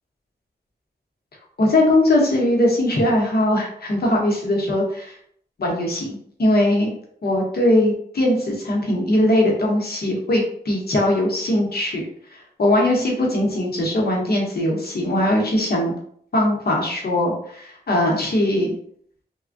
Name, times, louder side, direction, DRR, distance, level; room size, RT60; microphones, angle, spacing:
voice 1, 1.6-5.1 5.6-6.9 7.2-12.0 12.6-15.9 16.3-18.8, left 1 dB, 65° left, -1 dB, 0.9 m, -20 dB
3.3 x 2.2 x 2.5 m, 0.63 s
wide cardioid pair, 90°, 18 cm